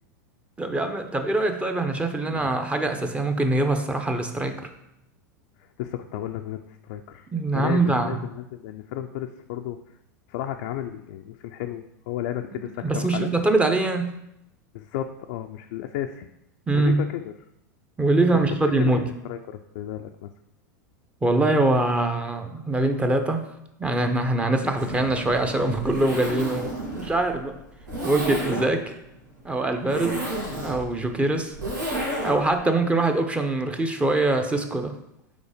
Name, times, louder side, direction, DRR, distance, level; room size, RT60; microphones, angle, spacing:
voice 1, 0.6-4.7 7.3-8.2 12.8-14.2 16.7-17.0 18.0-19.1 21.2-23.5 23.8-26.7 26.9-27.6 28.0-28.9 29.4-30.2 30.6-31.6 32.2-34.9, right 2 dB, 10° right, 6 dB, 0.7 m, -23 dB
voice 2, 5.6-9.8 10.3-13.3 14.7-16.3 16.7-17.3 18.8-20.3 26.5-26.6 30.0-30.3, left 11 dB, 60° left, 4 dB, 0.4 m, -33 dB
Zipper (clothing), 24.6-32.6, right 1 dB, 80° right, 2.2 m, -32 dB
5.2 x 4.3 x 5.0 m, 0.83 s
hypercardioid pair, 100°, 10 cm